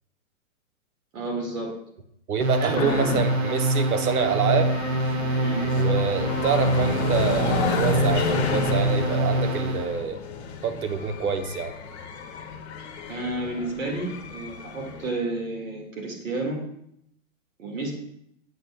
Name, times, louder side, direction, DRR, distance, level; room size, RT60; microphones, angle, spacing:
voice 1, 1.1-1.7 2.6-2.9 5.4-5.6 13.1-16.6 17.6-17.9, right 2 dB, 65° right, 1 dB, 2.0 m, -30 dB
voice 2, 2.3-4.7 5.7-10.2 10.6-11.7, right 6 dB, 80° right, 9 dB, 0.9 m, -26 dB
sound 1, 2.4-10.0, right 1 dB, 45° right, 0.9 m, -25 dB
sound 2, 2.7-5.4, left 7 dB, 75° left, 0.7 m, -34 dB
sound 3, 4.1-15.1, left 5 dB, 50° left, 0.9 m, -31 dB
7.9 x 6.7 x 2.3 m, 0.74 s
hypercardioid pair, 160°, 43 cm